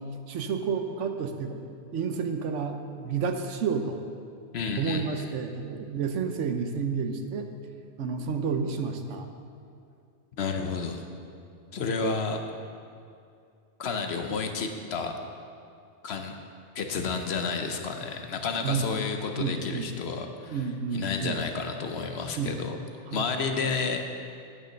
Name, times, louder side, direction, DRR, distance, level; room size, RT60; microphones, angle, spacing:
voice 1, 0.3-4.0 4.8-7.5 8.0-9.3 11.7-11.8 18.6-18.9 19.4-19.9 20.5-21.4 22.4-22.5 23.1-23.2, right 6 dB, 75° right, 6 dB, 1.1 m, -30 dB
voice 2, 4.5-5.0 10.4-11.0 11.7-12.4 13.8-15.1 16.0-16.4 16.7-20.6 20.9-22.8 23.1-24.0, left 4 dB, 60° left, 5 dB, 1.0 m, -31 dB
8.9 x 6.6 x 6.4 m, 2.4 s
omnidirectional pair, 1.3 m